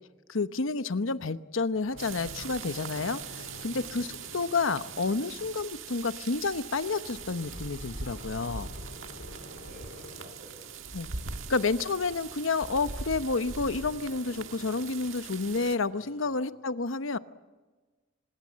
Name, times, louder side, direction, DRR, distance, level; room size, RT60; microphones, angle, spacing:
voice 1, 0.3-8.7 10.9-11.1 11.5-17.2, left 4 dB, 85° left, 12 dB, 0.9 m, -30 dB
sound 1, 1.7-10.3, left 1 dB, 65° left, 4.7 m, -49 dB
sound 2, 2.0-15.8, right 5 dB, 90° right, 1.6 m, -41 dB
voice 2, 2.6-2.9 3.2-3.6 4.9-5.1 9.1-11.3 15.9-16.3, right 1 dB, 40° right, 6 dB, 5.4 m, -55 dB
25.5 x 21.0 x 7.5 m, 1.3 s
head